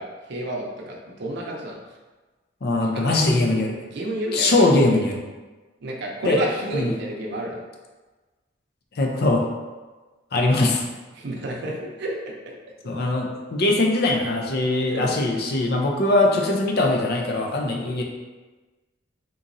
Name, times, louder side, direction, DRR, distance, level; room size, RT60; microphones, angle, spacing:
voice 1, 0.0-1.8 2.8-3.2 3.9-4.7 5.8-7.6 11.1-12.3 14.9-15.1, right 1 dB, 60° right, -1 dB, 0.6 m, -30 dB
voice 2, 2.6-3.8 4.3-5.2 6.2-6.4 6.7-6.9 9.0-9.4 10.3-10.8 12.8-18.0, left 2 dB, 55° left, 1 dB, 0.5 m, -21 dB
3.8 x 2.9 x 2.6 m, 1.2 s
head